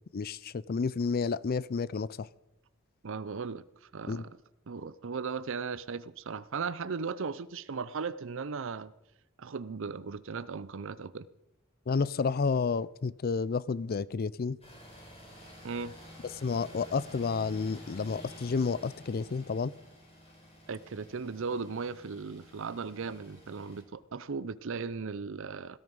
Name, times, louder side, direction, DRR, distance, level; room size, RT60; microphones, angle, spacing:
voice 1, 0.1-2.3 4.1-4.2 11.9-14.6 16.4-19.7, left 5 dB, 45° left, 0.4 m, -30 dB
voice 2, 3.0-4.3 4.7-8.9 9.4-11.3 15.6-15.9 20.7-25.8, right 5 dB, 65° right, 0.6 m, -37 dB
sound 1, 14.6-23.8, equal, 30° left, 5.1 m, -51 dB
17.5 x 13.0 x 5.4 m
head